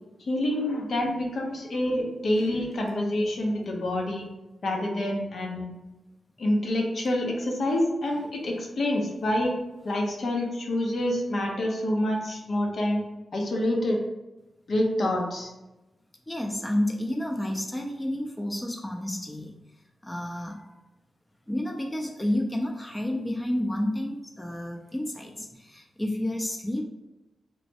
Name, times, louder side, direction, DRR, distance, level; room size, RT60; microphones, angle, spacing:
voice 1, 0.3-4.2 4.6-5.7 6.4-9.5 9.8-13.0 13.3-14.0 14.7-15.5, left 1 dB, 65° left, 0 dB, 0.6 m, -27 dB
voice 2, 16.3-19.6 20.0-20.8 21.5-26.8, left 1 dB, 15° left, 2 dB, 0.4 m, -30 dB
3.1 x 2.1 x 2.7 m, 1.0 s
cardioid pair, 60°, 0 cm